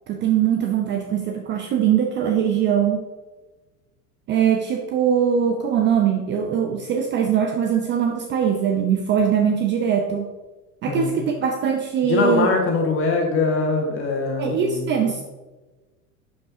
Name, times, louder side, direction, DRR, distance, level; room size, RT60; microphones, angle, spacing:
voice 1, 0.1-3.0 4.3-10.3 10.8-12.5 14.4-15.2, right 8 dB, 25° right, 4 dB, 0.6 m, -21 dB
voice 2, 10.9-11.2 12.0-15.1, left 4 dB, 30° left, 1 dB, 1.7 m, -23 dB
11.0 x 5.3 x 2.8 m, 1.2 s
figure-of-eight pair, 75°, 45 cm